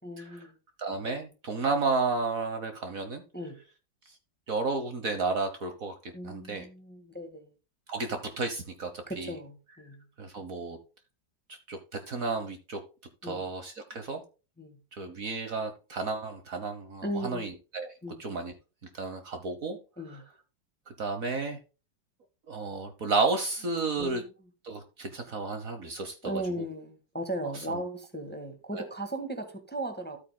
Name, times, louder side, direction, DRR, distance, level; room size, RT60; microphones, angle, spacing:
voice 1, 0.0-0.5 3.3-3.6 6.1-7.5 9.1-10.0 13.2-13.4 14.6-14.8 17.0-17.5 18.0-18.2 20.0-20.2 23.9-24.3 26.2-30.2, right 1 dB, 5° left, 5 dB, 1.5 m, -37 dB
voice 2, 0.8-3.2 4.5-5.9 6.2-6.7 7.9-9.3 10.2-10.8 11.5-11.8 12.1-12.8 13.2-14.2 14.9-17.9 18.2-18.5 18.9-19.8 20.9-21.6 22.5-24.2 24.6-26.4 27.7-27.8 28.8-28.9, right 3 dB, 50° right, 7 dB, 1.4 m, -32 dB
13.0 x 8.4 x 2.2 m, 0.32 s
omnidirectional pair, 2.0 m